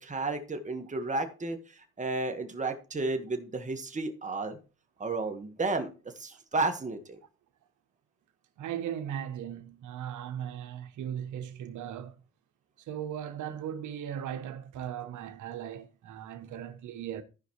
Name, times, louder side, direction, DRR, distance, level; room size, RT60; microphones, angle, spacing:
voice 1, 0.0-4.6 5.0-5.9 6.2-7.2, right 3 dB, 25° right, 1.6 m, -32 dB
voice 2, 8.6-12.1 12.8-17.2, right 9 dB, 75° right, 1.1 m, -38 dB
14.5 x 5.0 x 3.2 m
cardioid pair, 90°, 30 cm